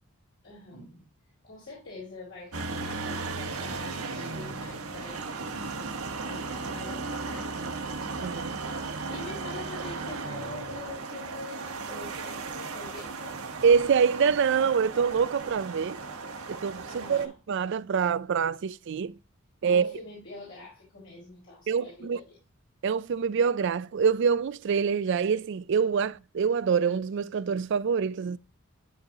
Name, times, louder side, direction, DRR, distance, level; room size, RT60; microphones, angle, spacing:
voice 1, 0.4-1.0 1.4-5.9 6.3-7.6 8.0-8.6 9.1-13.4 16.9-17.3 19.6-22.4, left 3 dB, 65° left, 3.7 m, -45 dB
sound 1, 2.5-17.3, right 4 dB, 90° right, 1.1 m, -36 dB
voice 2, 8.2-8.5 13.6-16.0 16.5-19.2 19.6-20.0 21.7-22.2 22.8-28.4, right 6 dB, 55° right, 0.3 m, -25 dB
12.0 x 3.9 x 2.8 m
head